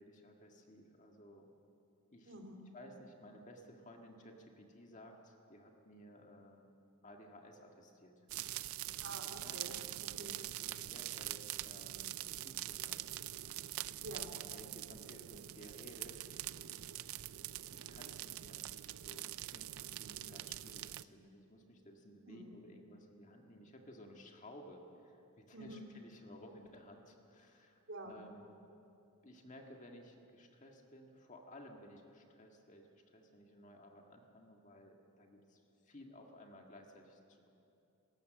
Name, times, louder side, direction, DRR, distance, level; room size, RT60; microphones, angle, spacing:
voice 1, 0.0-1.5 2.1-2.4 2.7-6.7 7.0-8.2 9.4-13.1 14.3-16.2 16.6-16.8 17.7-28.6 29.2-37.5, equal, 35° left, 2 dB, 1.8 m, -57 dB
voice 2, 2.3-2.6 9.0-10.4 14.0-14.3 22.3-22.5 25.5-25.9 27.9-28.2, right 1 dB, 60° right, 2 dB, 2.6 m, -48 dB
sound 1, 8.3-21.0, right 14 dB, 80° right, 0.5 m, -44 dB
19.5 x 18.0 x 7.6 m, 2.7 s
head